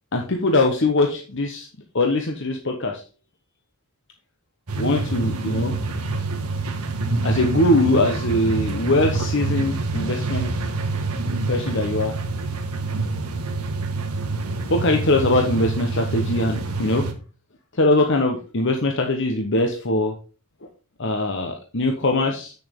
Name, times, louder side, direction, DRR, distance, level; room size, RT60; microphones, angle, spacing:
voice 1, 0.1-1.7 1.9-3.0 4.8-5.8 7.2-10.5 11.5-12.2 14.7-17.1 17.7-20.1 21.0-22.5, left 2 dB, 55° left, 3 dB, 1.0 m, -21 dB
sound 1, 4.7-17.1, right 3 dB, 85° right, 1.5 m, -26 dB
8.3 x 7.0 x 3.6 m, 0.36 s
head